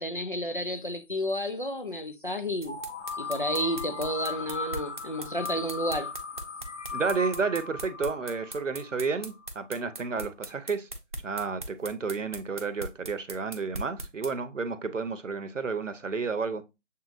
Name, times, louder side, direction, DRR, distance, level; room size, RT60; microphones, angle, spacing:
voice 1, 0.0-2.8 3.2-6.1, equal, 45° left, 0.4 m, -31 dB
sound 1, 2.6-9.4, left 4 dB, 75° left, 0.8 m, -37 dB
sound 2, 2.6-14.3, right 2 dB, 40° right, 0.7 m, -39 dB
voice 2, 6.9-10.9 11.2-16.6, right 4 dB, 90° right, 0.9 m, -31 dB
6.9 x 2.8 x 2.5 m
figure-of-eight pair, 165°, 36 cm